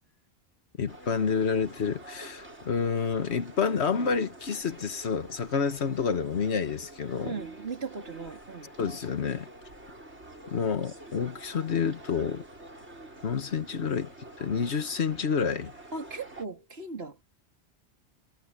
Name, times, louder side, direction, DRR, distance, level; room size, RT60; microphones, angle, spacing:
voice 1, 0.8-7.3 8.8-9.5 10.5-12.4 13.2-14.1 14.4-15.7, left 6 dB, 75° left, 1.6 m, -29 dB
sound 1, 0.9-16.5, right 1 dB, 85° right, 7.7 m, -48 dB
voice 2, 7.2-8.7 15.9-17.2, right 4 dB, 65° right, 3.1 m, -38 dB
omnidirectional pair, 1.1 m